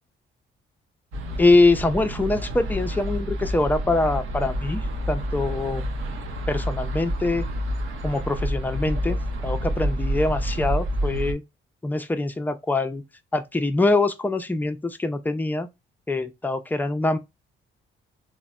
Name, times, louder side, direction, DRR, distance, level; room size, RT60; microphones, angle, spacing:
sound 1, 1.1-11.3, equal, 85° right, 0.7 m, -28 dB
voice 1, 1.4-4.8 5.1-5.8 6.5-7.5 8.0-9.2 9.4-11.4 11.8-13.0 13.3-15.7 16.1-17.2, left 2 dB, 10° left, 0.4 m, -23 dB
3.9 x 2.1 x 2.2 m
cardioid pair, 90°, 20 cm